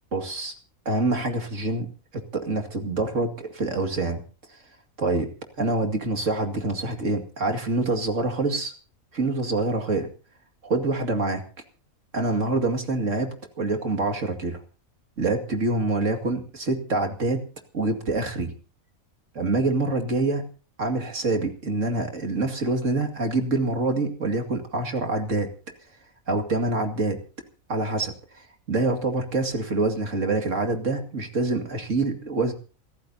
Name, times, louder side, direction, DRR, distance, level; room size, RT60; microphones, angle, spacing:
voice 1, 0.1-0.5 0.9-4.2 5.0-5.3 5.6-8.7 9.1-10.1 10.6-11.4 12.1-13.3 13.6-14.6 15.2-17.4 17.7-18.5 19.3-20.4 20.8-25.5 26.3-27.2 27.7-32.5, right 2 dB, 60° right, 5 dB, 2.6 m, -26 dB
27.5 x 14.0 x 2.8 m, 0.37 s
omnidirectional pair, 1.5 m